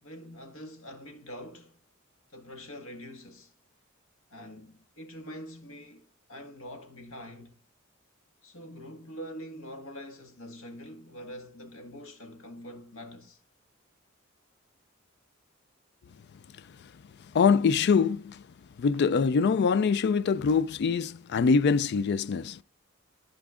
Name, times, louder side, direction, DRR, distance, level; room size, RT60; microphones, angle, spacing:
voice 1, 0.0-1.8 2.3-3.5 4.3-7.6 8.4-13.4, equal, 90° left, 1.7 m, -44 dB
voice 2, 17.3-18.4 18.8-22.6, left 5 dB, 55° left, 0.4 m, -24 dB
14.5 x 5.1 x 2.4 m
head